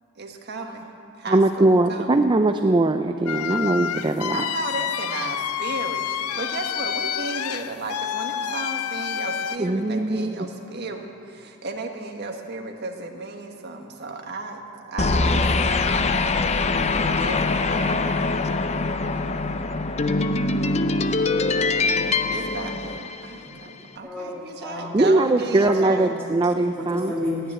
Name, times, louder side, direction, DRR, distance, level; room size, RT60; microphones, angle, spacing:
voice 1, 0.2-0.9 1.2-2.2 4.3-16.0 17.2-18.4 22.3-26.1, right 3 dB, 50° right, 3 dB, 1.5 m, -34 dB
voice 2, 1.3-4.4 9.6-10.5 21.6-21.7 24.9-27.1, right 2 dB, 20° right, 7 dB, 0.4 m, -21 dB
sound 1, 3.3-9.6, left 9 dB, 85° left, 0.5 m, -28 dB
sound 2, 15.0-23.5, left 3 dB, 30° left, 0.5 m, -23 dB
voice 3, 21.7-22.4 23.4-25.0 25.6-27.5, left 1 dB, 5° left, -7 dB, 1.8 m, -33 dB
15.0 x 10.0 x 9.5 m, 2.6 s
head